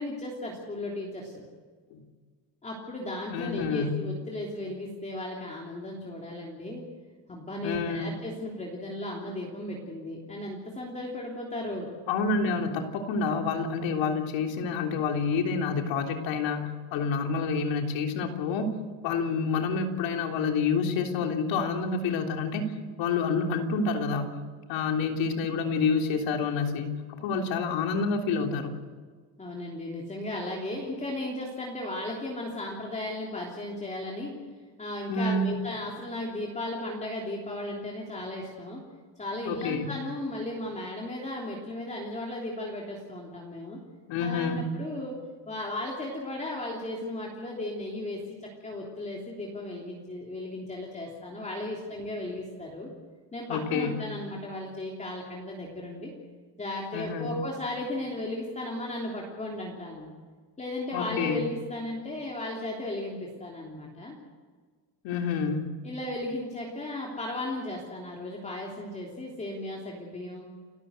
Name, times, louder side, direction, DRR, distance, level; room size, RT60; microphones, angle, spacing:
voice 1, 0.0-1.5 2.6-6.8 7.3-11.9 29.4-34.3 34.8-38.8 39.2-43.8 44.2-45.1 45.5-48.2 48.6-52.9 53.3-56.1 56.6-60.1 60.6-64.2 65.8-70.5, left 1 dB, 15° left, -2 dB, 3.2 m, -35 dB
voice 2, 3.3-4.0 7.6-8.1 12.1-18.8 19.0-24.3 24.7-28.8 35.1-35.5 39.4-39.9 44.1-44.7 53.5-53.9 56.9-57.3 60.9-61.4 65.0-65.7, left 4 dB, 85° left, 3 dB, 3.5 m, -28 dB
29.5 x 13.5 x 8.0 m, 1.5 s
cardioid pair, 165°, 44 cm